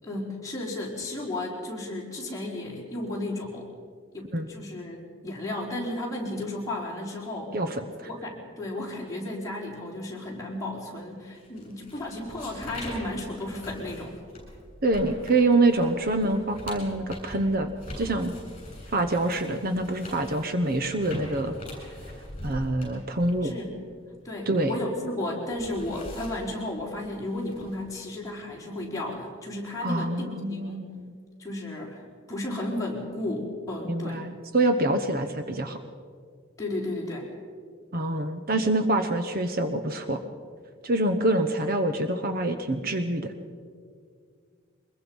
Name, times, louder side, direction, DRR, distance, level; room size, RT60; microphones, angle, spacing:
voice 1, 0.0-3.7 4.1-7.6 8.1-14.2 23.4-23.7 24.2-30.8 31.4-32.0 32.3-34.2 36.6-37.3, left 1 dB, 15° left, -4 dB, 4.3 m, -33 dB
voice 2, 7.5-8.1 14.8-17.7 18.0-18.3 18.9-21.6 22.4-23.5 24.5-24.8 29.8-31.1 33.9-35.8 37.9-40.2 40.8-43.3, right 2 dB, 45° right, 8 dB, 1.0 m, -26 dB
sound 1, 11.3-24.8 25.2-27.8, left 1 dB, 30° left, 7.8 m, -43 dB
23.5 x 21.5 x 5.5 m, 2.1 s
head